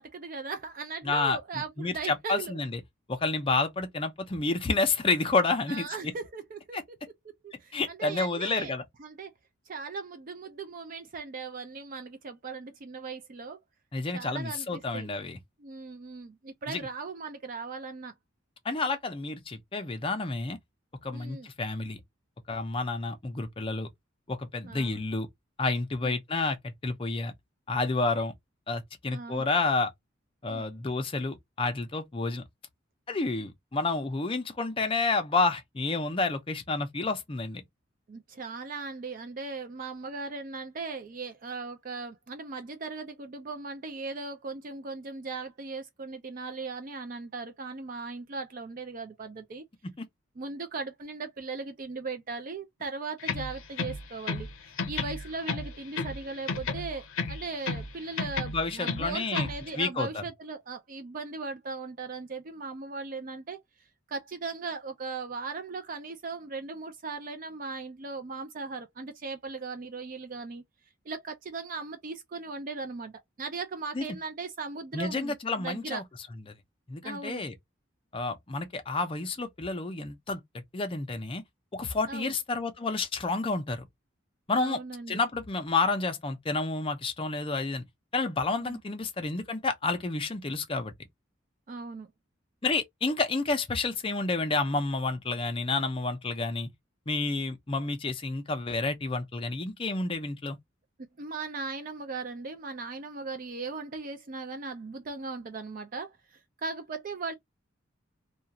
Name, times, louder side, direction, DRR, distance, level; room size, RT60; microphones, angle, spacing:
voice 1, 0.0-2.6 5.7-6.8 7.4-8.7 9.0-9.3 9.7-13.6 14.1-15.1 15.6-18.1 21.1-21.5 24.6-25.0 26.0-26.2 29.1-29.5 30.5-30.6 38.1-49.6 50.4-63.6 64.1-70.6 71.1-76.0 77.0-77.4 82.1-82.3 84.6-85.2 88.6-88.8 91.7-92.1 101.2-107.3, right 4 dB, 45° right, 0.4 m, -38 dB
voice 2, 1.0-2.8 3.1-5.9 6.7-6.8 7.7-8.8 13.9-15.4 16.7-16.9 18.6-20.6 21.0-22.0 22.5-23.9 24.3-25.3 25.6-27.3 27.7-28.3 28.7-29.9 30.4-32.4 33.1-37.6 50.0-50.1 58.5-59.5 59.8-60.2 73.9-74.0 74.9-76.0 76.9-77.5 78.1-81.4 81.7-83.9 84.5-84.8 85.1-87.8 88.1-90.9 92.6-96.7 97.1-100.6, left 3 dB, 25° left, 0.5 m, -30 dB
sound 1, 53.2-54.5 54.8-56.2 56.5-57.9 58.2-59.6, left 4 dB, 90° left, 0.7 m, -32 dB
2.4 x 2.2 x 2.7 m
head